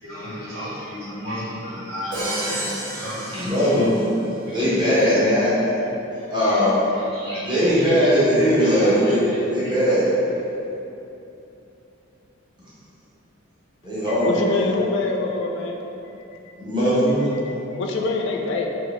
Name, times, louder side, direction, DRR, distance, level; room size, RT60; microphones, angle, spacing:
voice 1, 0.0-3.7 4.4-4.5 5.0-5.2 6.1-6.6 6.9-8.0 8.6-9.7, equal, 55° right, -16 dB, 1.4 m, -34 dB
Crash cymbal, 2.1-4.3, right 1 dB, 80° right, 0.8 m, -31 dB
voice 2, 3.3-5.7 6.3-6.8 7.4-10.2 13.8-14.6 16.6-17.2, equal, 25° right, -10 dB, 0.8 m, -20 dB
voice 3, 14.1-15.8 17.4-18.7, left 3 dB, 60° left, 2 dB, 0.3 m, -25 dB
2.8 x 2.7 x 3.0 m, 2.9 s
head